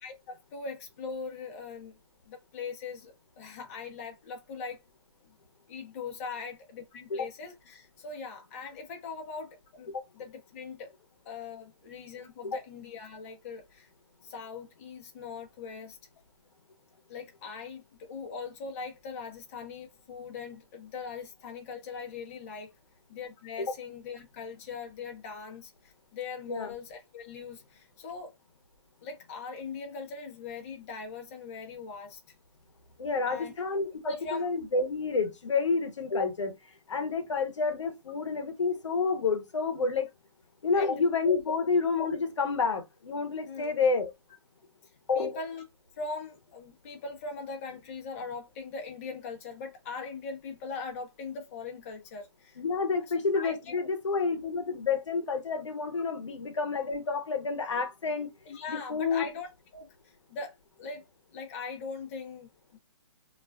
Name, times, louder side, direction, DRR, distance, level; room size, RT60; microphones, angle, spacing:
voice 1, 0.0-2.0 2.3-4.8 5.7-10.9 11.2-13.9 14.2-16.0 17.1-17.8 18.1-22.7 23.1-28.3 29.0-32.2 33.2-33.5 34.0-34.5 40.7-40.9 43.5-43.7 45.2-45.6 46.0-52.6 53.3-53.9 58.4-61.1 61.3-62.8, left 4 dB, 30° left, 0.7 m, -41 dB
voice 2, 33.0-36.5 36.9-40.1 40.6-44.1 45.1-45.4 52.6-58.3 58.7-59.3, left 4 dB, 85° left, 0.7 m, -29 dB
2.4 x 2.3 x 2.2 m
hypercardioid pair, 155°, 15 cm